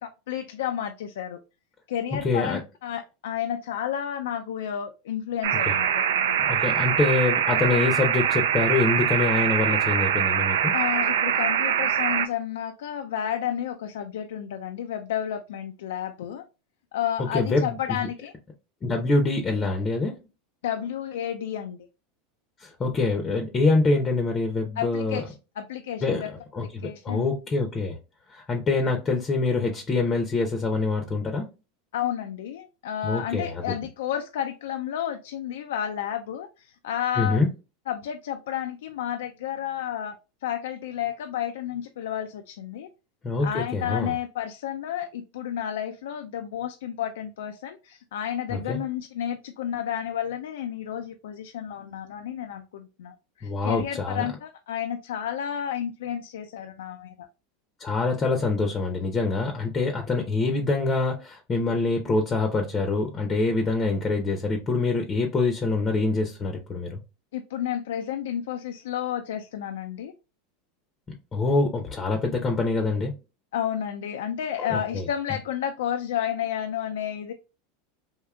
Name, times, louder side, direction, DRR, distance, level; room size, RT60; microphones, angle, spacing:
voice 1, 0.3-1.4 1.9-6.5 10.7-16.4 16.9-18.3 20.6-21.8 24.8-26.3 26.8-27.3 31.9-37.4 37.9-40.2 40.4-42.9 43.4-57.3 67.3-70.1 73.5-77.3, left 10 dB, 85° left, 0.3 m, -31 dB
voice 2, 2.2-2.6 5.7-5.8 6.5-10.7 17.2-17.8 18.8-20.2 22.6-25.2 26.0-26.2 26.5-28.0 28.3-31.5 33.0-33.6 37.2-37.5 43.2-44.1 48.5-48.8 53.4-54.2 57.8-67.0 71.3-73.1 74.7-75.1, left 3 dB, 25° left, 0.6 m, -25 dB
sound 1, 5.4-12.3, right 9 dB, 85° right, 0.3 m, -23 dB
3.5 x 2.6 x 2.3 m
supercardioid pair, 120°, 0 cm